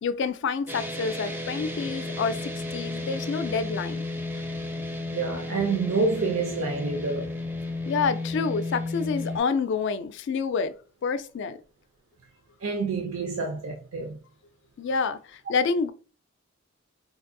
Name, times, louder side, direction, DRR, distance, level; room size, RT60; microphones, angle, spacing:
voice 1, 0.0-4.0 7.9-10.8 11.0-11.6 14.8-15.9, left 5 dB, 60° left, 0.3 m, -28 dB
sound 1, 0.7-9.4, left 2 dB, 10° right, 0.4 m, -33 dB
voice 2, 5.1-7.3 12.6-14.2, right 4 dB, 85° right, 0.5 m, -28 dB
3.9 x 2.5 x 2.6 m
head